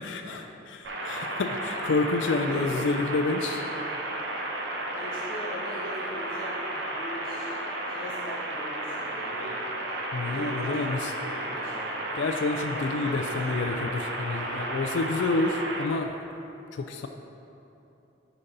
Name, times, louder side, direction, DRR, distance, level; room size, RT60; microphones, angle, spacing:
voice 1, 0.0-3.7 10.1-11.1 12.2-16.2 16.7-17.1, left 3 dB, 70° left, 5 dB, 0.4 m, -29 dB
sound 1, 0.8-15.8, right 1 dB, 60° right, 0.9 m, -33 dB
voice 2, 2.5-2.8 4.9-7.6 7.9-9.6 10.2-11.9 12.9-13.6, equal, 85° left, -5 dB, 1.3 m, -41 dB
9.7 x 4.0 x 5.3 m, 3.0 s
head